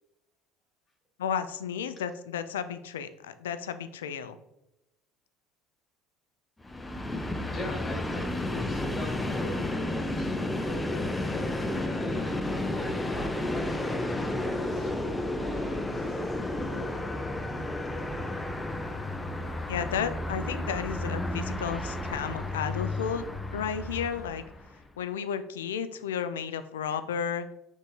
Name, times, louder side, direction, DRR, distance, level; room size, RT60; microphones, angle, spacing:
voice 1, 1.2-4.4 19.7-23.2 23.5-24.4 25.0-27.5, left 8 dB, 90° left, 12 dB, 0.3 m, -33 dB
Train, 6.6-24.7, left 1 dB, 15° left, 0.5 m, -32 dB
voice 2, 7.5-14.0 14.4-16.3 16.7-17.0, left 2 dB, 30° left, -2 dB, 1.1 m, -42 dB
5.2 x 3.5 x 2.7 m, 0.86 s
hypercardioid pair, 80°, 0 cm